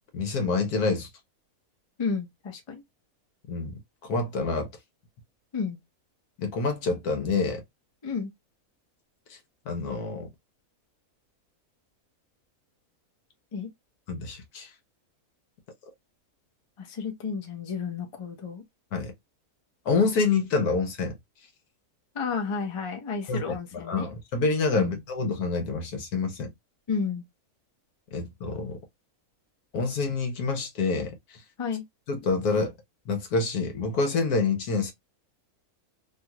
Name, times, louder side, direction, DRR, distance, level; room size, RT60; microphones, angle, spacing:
voice 1, 0.1-1.1 3.5-4.7 6.4-7.6 9.3-9.4 9.7-10.3 14.1-14.7 18.9-19.1 19.8-21.2 23.3-26.5 28.1-28.8 29.7-31.4 32.1-32.8 33.1-34.9, left 4 dB, 80° left, 1.3 m, -27 dB
voice 2, 2.0-2.8 5.5-5.8 8.0-8.3 13.5-13.7 16.8-18.6 22.1-24.1 24.7-25.0 26.9-27.2 31.6-31.8, left 5 dB, 35° left, 0.5 m, -32 dB
2.9 x 2.4 x 2.9 m
omnidirectional pair, 1.6 m